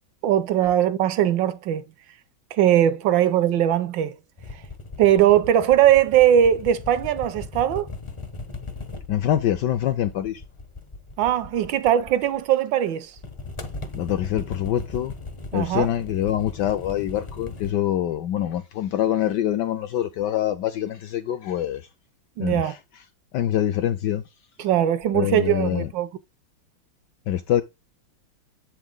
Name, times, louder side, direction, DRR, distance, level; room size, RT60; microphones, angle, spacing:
voice 1, 0.2-1.8 2.5-4.1 5.0-7.9 11.2-13.1 15.5-15.9 22.4-22.7 24.6-26.1, right 11 dB, 75° right, 1.2 m, -20 dB
sound 1, 4.4-12.5 13.1-17.7, left 3 dB, 50° left, 0.3 m, -38 dB
voice 2, 9.1-10.4 13.9-15.1 15.5-21.8 22.4-22.8 23.3-24.2 25.1-25.9 27.3-27.6, left 11 dB, 75° left, 1.0 m, -25 dB
7.8 x 6.0 x 3.8 m
omnidirectional pair, 2.3 m